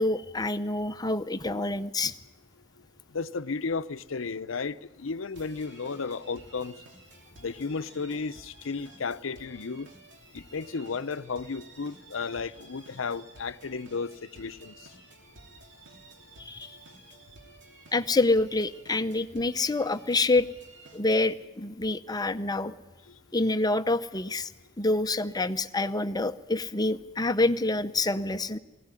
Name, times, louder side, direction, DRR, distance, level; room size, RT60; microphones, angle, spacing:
voice 1, 0.0-2.1 16.4-16.8 17.9-20.5 20.9-22.7 23.3-24.5 24.8-28.6, left 2 dB, 20° left, 0.7 m, -27 dB
voice 2, 3.1-6.8 7.4-9.9 10.3-14.7, left 4 dB, 90° left, 0.7 m, -34 dB
sound 1, 5.3-21.3, right 2 dB, 60° right, 3.2 m, -53 dB
20.0 x 17.0 x 9.8 m
head